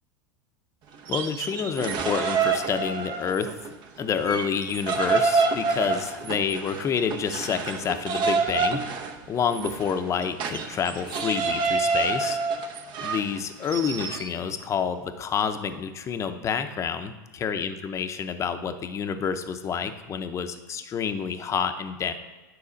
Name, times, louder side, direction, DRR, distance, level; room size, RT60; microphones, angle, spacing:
sound 1, 0.9-3.7 4.0-14.3, right 4 dB, 45° right, 0.8 m, -27 dB
voice 1, 1.1-3.5 4.0-8.8 9.3-12.4 13.0-22.1, left 7 dB, 30° left, 8 dB, 0.7 m, -28 dB
9.8 x 4.0 x 5.2 m, 1.2 s
supercardioid pair, 110°, 10 cm